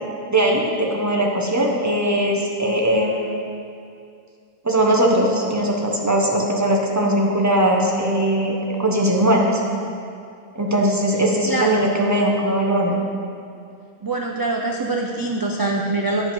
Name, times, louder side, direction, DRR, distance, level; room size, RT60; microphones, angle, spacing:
voice 1, 0.3-3.2 4.6-8.5 8.8-9.6 10.5-13.0, right 1 dB, 20° right, -1 dB, 0.9 m, -19 dB
voice 2, 11.5-11.8 14.0-16.3, right 2 dB, 35° right, 1 dB, 0.3 m, -24 dB
9.3 x 5.1 x 5.4 m, 2.4 s
omnidirectional pair, 1.1 m